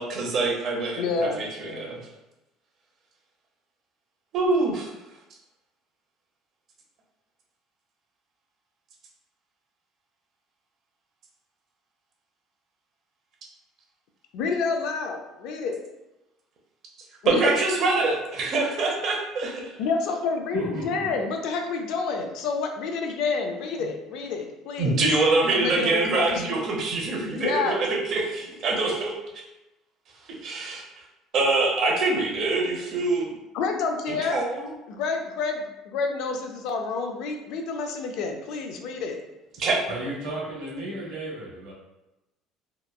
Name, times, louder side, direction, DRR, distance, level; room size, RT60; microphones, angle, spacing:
voice 1, 0.0-2.0 4.3-4.9 17.3-19.6 24.8-29.1 30.3-30.8 31.3-33.3 34.1-34.6 39.6-39.8, right 3 dB, 45° right, -1 dB, 0.6 m, -25 dB
voice 2, 1.0-1.9 14.3-15.8 17.2-17.6 19.8-25.0 25.5-26.4 27.3-27.8 33.5-34.4 34.9-39.2, left 4 dB, 65° left, 4 dB, 0.3 m, -29 dB
voice 3, 20.5-21.1 39.9-41.7, right 1 dB, 85° right, -5 dB, 1.0 m, -33 dB
2.9 x 2.1 x 2.2 m, 0.97 s
cardioid pair, 140°, 0 cm